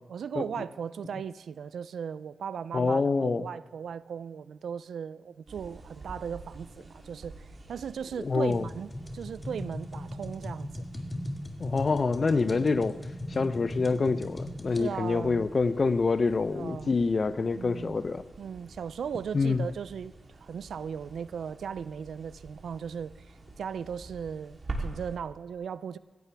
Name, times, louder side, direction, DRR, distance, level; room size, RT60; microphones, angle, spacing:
voice 1, 0.1-10.9 12.5-12.9 14.7-15.5 16.5-17.0 17.5-18.0 18.4-26.0, right 7 dB, 85° right, 17 dB, 0.4 m, -37 dB
voice 2, 2.7-3.5 8.2-8.6 11.6-13.0 13.3-18.2 19.3-19.7, left 4 dB, 50° left, 13 dB, 0.6 m, -26 dB
sound 1, 5.5-25.2, right 2 dB, 45° right, 3.2 m, -47 dB
sound 2, 8.5-14.9, left 1 dB, 20° left, 1.7 m, -39 dB
16.5 x 14.0 x 3.4 m, 1.4 s
cardioid pair, 55°, 0 cm